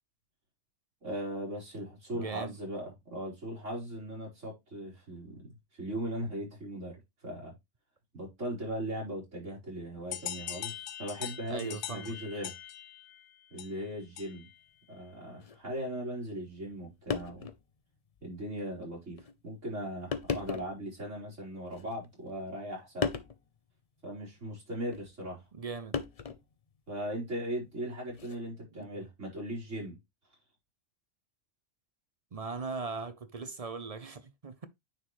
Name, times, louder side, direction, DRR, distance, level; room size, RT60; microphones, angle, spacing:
voice 1, 1.0-7.5 8.1-12.5 13.5-14.5 14.9-17.5 18.2-23.1 24.0-25.4 26.9-30.0, right 1 dB, 80° right, 4.6 m, -38 dB
voice 2, 2.1-2.6 11.5-12.2 25.5-26.0 28.7-28.9 32.3-34.7, right 4 dB, 40° right, 0.5 m, -39 dB
sound 1, 10.1-14.6, left 11 dB, 75° left, 0.9 m, -42 dB
Plastic jug, 15.4-15.6 16.7-16.8 17.1-17.6 18.2-18.3 19.2-19.4 20.1-20.8 21.7-22.3 23.0-23.4 24.9-25.1 25.9-26.5 28.1-28.4, left 5 dB, 40° left, 0.6 m, -35 dB
9.4 x 4.5 x 3.1 m
omnidirectional pair, 1.3 m